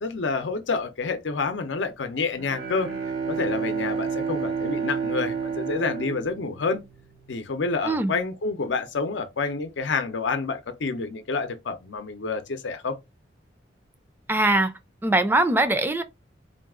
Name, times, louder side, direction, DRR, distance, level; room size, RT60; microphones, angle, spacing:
voice 1, 0.0-2.9 3.3-6.8 7.3-13.0, left 4 dB, 90° left, 0.6 m, -28 dB
Bowed string instrument, 2.3-7.2, right 6 dB, 85° right, 1.7 m, -30 dB
voice 2, 14.3-14.7 15.0-16.0, right 2 dB, 10° right, 0.4 m, -21 dB
3.8 x 2.3 x 3.6 m
head